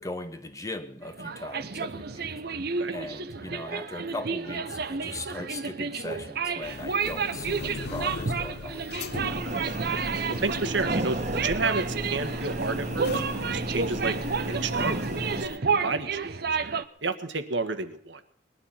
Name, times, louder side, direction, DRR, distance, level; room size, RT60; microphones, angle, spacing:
voice 1, 0.0-2.4 2.9-8.9, left 2 dB, 20° left, 1.3 m, -39 dB
sound 1, 1.0-16.8, right 5 dB, 55° right, 0.8 m, -31 dB
sound 2, 6.6-15.6, left 4 dB, 60° left, 0.6 m, -40 dB
sound 3, 9.1-15.5, right 1 dB, 40° right, 1.6 m, -33 dB
voice 2, 9.4-13.2 13.5-14.2 14.5-15.1 15.4-16.4 17.0-18.2, right 3 dB, 80° right, 1.6 m, -31 dB
21.0 x 11.5 x 5.8 m
head